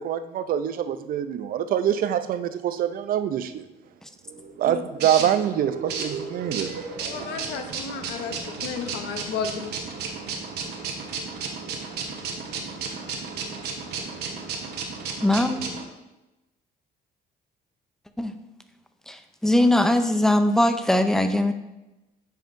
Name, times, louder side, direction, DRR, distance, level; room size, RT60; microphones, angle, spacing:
voice 1, 0.0-3.7 4.6-7.4, right 10 dB, 60° right, 11 dB, 0.5 m, -25 dB
sound 1, 4.3-15.8, right 5 dB, 75° right, 1.1 m, -34 dB
voice 2, 7.0-9.7, left 6 dB, 80° left, 7 dB, 0.9 m, -33 dB
voice 3, 15.2-15.6 18.2-18.3 19.1-21.5, left 1 dB, 5° left, 8 dB, 0.5 m, -21 dB
9.0 x 5.6 x 2.6 m, 1.0 s
cardioid pair, 110°, 17 cm